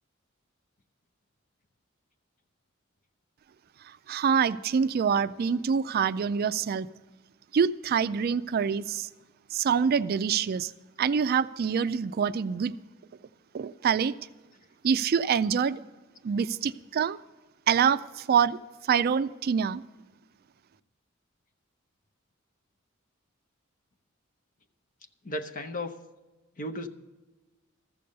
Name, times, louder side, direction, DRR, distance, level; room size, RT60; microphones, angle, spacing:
voice 1, 4.1-6.9 7.5-9.1 9.5-10.7 11.0-12.7 13.5-14.1 14.8-15.8 16.2-17.2 17.7-19.8, right 7 dB, 50° right, 14 dB, 0.3 m, -26 dB
voice 2, 25.2-26.0 26.6-26.9, left 1 dB, 40° left, 8 dB, 0.8 m, -34 dB
14.0 x 6.9 x 6.5 m, 1.2 s
head